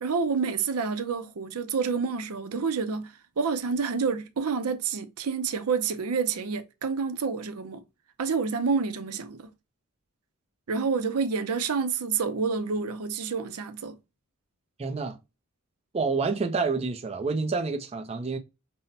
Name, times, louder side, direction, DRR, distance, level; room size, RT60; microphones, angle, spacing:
voice 1, 0.0-7.8 8.2-9.5 10.7-14.0, right 5 dB, 85° right, 0.6 m, -28 dB
voice 2, 14.8-15.2 15.9-18.4, right 4 dB, 30° right, 0.5 m, -28 dB
5.4 x 2.1 x 2.7 m
head